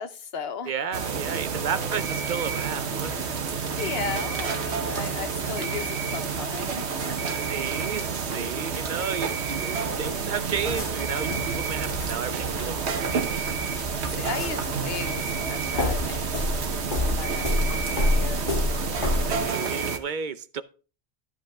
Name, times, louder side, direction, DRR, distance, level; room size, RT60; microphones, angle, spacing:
voice 1, 0.0-0.7 3.8-7.1 14.2-16.4 16.7-18.4, left 6 dB, 70° left, 1.1 m, -36 dB
voice 2, 0.7-3.4 7.3-13.5 17.3-17.5 19.2-20.6, right 7 dB, 55° right, 0.7 m, -33 dB
sound 1, 0.9-20.0, right 5 dB, 90° right, 1.3 m, -29 dB
sound 2, 9.8-19.5, left 1 dB, 50° left, 1.9 m, -30 dB
12.5 x 7.7 x 3.5 m
omnidirectional pair, 1.1 m